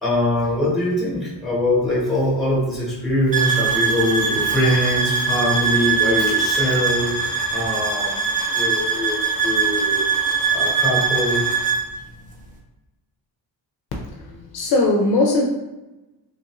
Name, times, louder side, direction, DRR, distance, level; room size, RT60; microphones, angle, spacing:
voice 1, 0.0-8.3 8.5-10.0 10.5-11.5, left 1 dB, ahead, -7 dB, 1.0 m, -22 dB
sound 1, 3.3-11.8, right 5 dB, 20° right, 0.3 m, -21 dB
voice 2, 14.0-15.5, left 2 dB, 60° left, 0 dB, 0.5 m, -20 dB
2.9 x 2.4 x 2.9 m, 1.0 s
wide cardioid pair, 160°, 45 cm